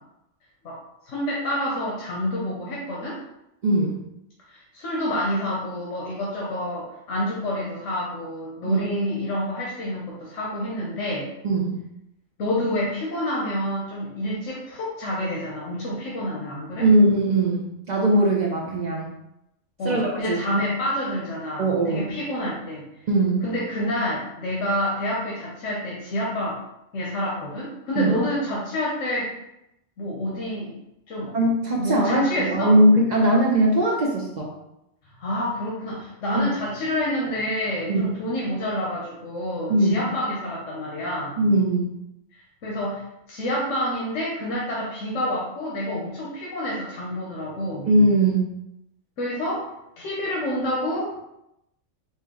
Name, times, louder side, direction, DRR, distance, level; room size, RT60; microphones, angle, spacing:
voice 1, 1.1-3.2 4.5-11.3 12.4-16.9 19.8-22.8 23.4-26.6 26.9-29.3 30.0-30.7 31.1-31.3 31.8-32.7 35.2-41.4 42.3-47.9 49.2-49.7 50.0-51.2, left 1 dB, 85° left, -5 dB, 1.1 m, -28 dB
voice 2, 3.6-4.0 8.6-8.9 11.4-11.8 16.8-19.1 19.8-20.4 21.6-22.1 23.1-23.4 28.0-28.1 31.3-34.5 36.3-36.5 37.9-38.1 39.7-40.1 41.4-41.9 47.9-48.5, right 1 dB, 45° right, -3 dB, 0.6 m, -20 dB
4.3 x 2.1 x 3.6 m, 0.84 s
omnidirectional pair, 1.3 m